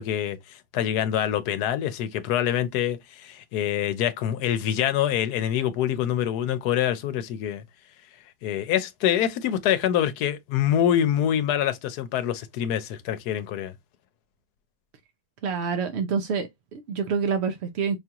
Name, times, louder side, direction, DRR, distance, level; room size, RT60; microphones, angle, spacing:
voice 1, 0.0-7.6 8.4-13.7, left 10 dB, 85° left, 1.1 m, -25 dB
voice 2, 15.4-18.0, right 6 dB, 70° right, 0.6 m, -27 dB
5.0 x 2.4 x 2.8 m
omnidirectional pair, 1.7 m